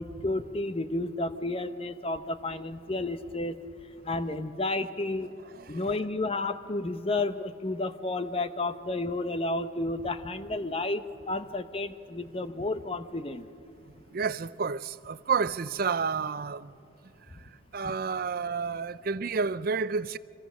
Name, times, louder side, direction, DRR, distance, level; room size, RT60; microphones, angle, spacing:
voice 1, 0.0-3.6 4.0-5.3 5.7-13.5, left 2 dB, 25° left, 0.8 m, -31 dB
voice 2, 5.5-6.1 14.1-16.7 17.3-20.2, right 5 dB, 45° right, 0.4 m, -31 dB
26.0 x 25.0 x 6.2 m
head